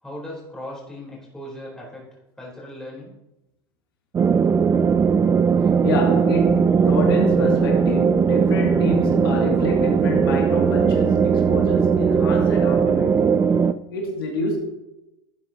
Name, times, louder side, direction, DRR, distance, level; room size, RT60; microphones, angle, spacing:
voice 1, 0.0-2.1 2.4-3.1, left 1 dB, 5° left, 3.8 m, -37 dB
sound 1, 4.1-13.7, right 6 dB, 20° right, 0.4 m, -19 dB
voice 2, 5.8-13.3 13.9-14.6, left 3 dB, 80° left, 2.4 m, -27 dB
12.0 x 9.2 x 2.9 m
hypercardioid pair, 95°, 12 cm